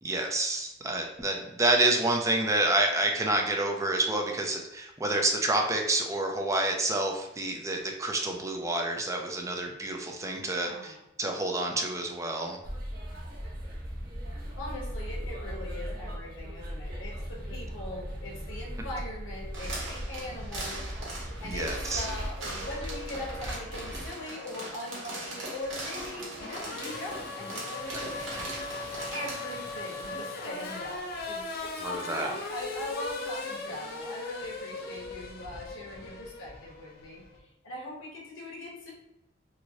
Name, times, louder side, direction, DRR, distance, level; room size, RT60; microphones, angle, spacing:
voice 1, 0.0-12.6 21.4-22.0 31.8-32.3, right 2 dB, 15° right, 2 dB, 0.4 m, -28 dB
voice 2, 10.3-11.0 14.6-28.8 29.1-38.9, left 1 dB, 85° left, -2 dB, 1.0 m, -41 dB
sound 1, 12.6-24.1, equal, 50° right, 0.7 m, -38 dB
plastic bottle granulation, 19.5-29.5, right 2 dB, 75° right, 1.0 m, -40 dB
Race car auto racing / Accelerating revving vroom, 22.6-37.4, left 3 dB, 50° left, 0.5 m, -40 dB
3.0 x 2.6 x 2.7 m, 0.89 s
head